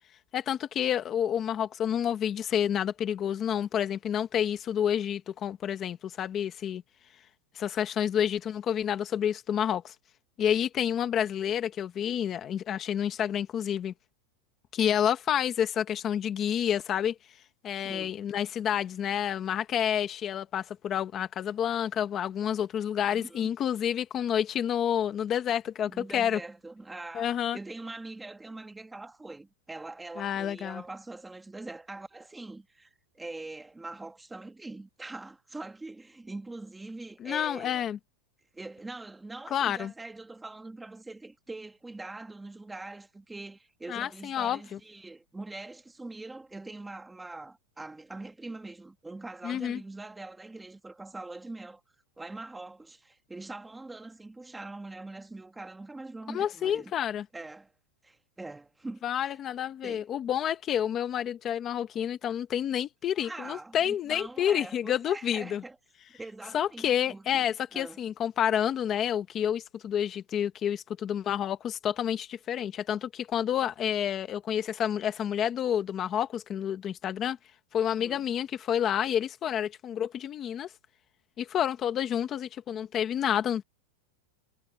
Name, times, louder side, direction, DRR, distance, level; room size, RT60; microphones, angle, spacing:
voice 1, 0.3-6.8 7.5-9.9 10.4-13.9 14.7-17.1 17.6-26.4 27.1-27.6 30.2-30.8 37.2-38.0 39.5-39.9 43.9-44.6 49.4-49.8 56.3-57.2 59.0-65.6 66.5-77.4 77.7-80.7 81.4-83.6, left 9 dB, 20° left, 1.1 m, -29 dB
voice 2, 17.8-18.1 23.0-23.5 25.9-37.8 38.5-51.8 52.2-56.9 57.3-57.7 58.0-59.3 59.8-60.1 63.2-65.8 66.1-68.0 77.9-78.2, right 2 dB, 5° right, 1.4 m, -43 dB
supercardioid pair, 175°, 0 cm